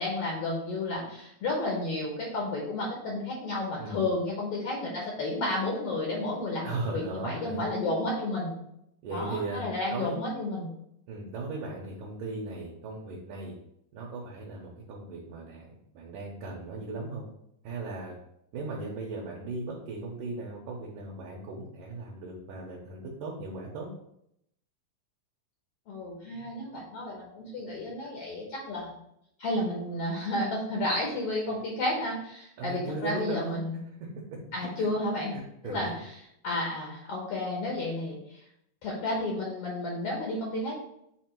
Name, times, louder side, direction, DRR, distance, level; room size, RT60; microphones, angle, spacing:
voice 1, 0.0-8.6 9.1-10.7 25.9-28.9 29.4-33.8 34.5-35.3 35.6-36.1 36.4-38.4 38.8-40.7, left 2 dB, 75° left, -2 dB, 1.4 m, -32 dB
voice 2, 6.6-7.7 9.0-10.1 11.1-13.6 13.9-17.2 17.6-18.1 18.5-23.9 32.6-33.6 34.0-34.4 34.8-34.9 35.3-35.9, right 3 dB, 70° right, -4 dB, 2.3 m, -37 dB
8.4 x 2.8 x 4.4 m, 0.76 s
omnidirectional pair, 4.3 m